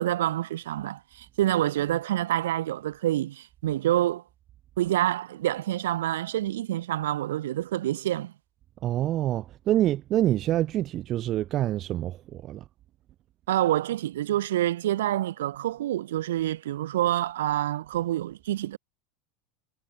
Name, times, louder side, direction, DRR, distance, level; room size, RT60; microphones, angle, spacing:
voice 1, 0.0-4.2 4.8-8.3 13.5-18.8, right 13 dB, 65° right, 1.6 m, -27 dB
voice 2, 8.8-12.6, right 13 dB, 40° right, 0.5 m, -26 dB
figure-of-eight pair, 80°, 0 cm